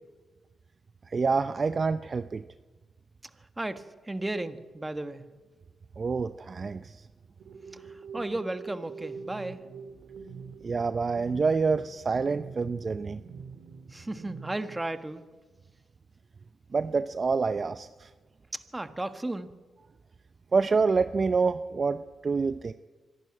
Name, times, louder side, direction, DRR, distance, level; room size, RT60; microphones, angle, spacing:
voice 1, 1.1-2.4 6.0-7.0 10.6-13.2 16.7-18.1 20.5-22.7, right 4 dB, 45° right, 11 dB, 0.6 m, -27 dB
voice 2, 3.6-5.2 7.7-9.6 13.9-15.2 18.7-19.5, right 2 dB, 20° right, 9 dB, 1.5 m, -34 dB
sound 1, 7.4-14.8, right 5 dB, 75° right, 1.8 m, -45 dB
25.5 x 11.5 x 8.8 m, 1.3 s
cardioid pair, 65°, 0 cm